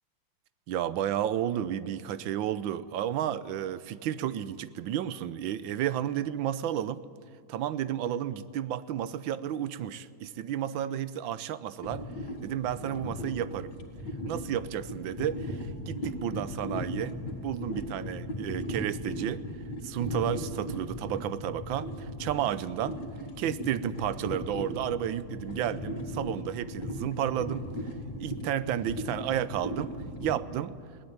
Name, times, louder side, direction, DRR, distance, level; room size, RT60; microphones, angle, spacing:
voice 1, 0.7-7.0 7.5-12.1 12.4-13.7 14.2-17.1 17.4-19.4 19.8-23.0 23.4-27.6 28.2-29.9 30.2-30.8, right 10 dB, 85° right, 16 dB, 1.5 m, -32 dB
sound 1, 11.8-30.3, left 1 dB, 60° left, 3.0 m, -37 dB
20.5 x 17.5 x 9.4 m, 2.3 s
omnidirectional pair, 2.1 m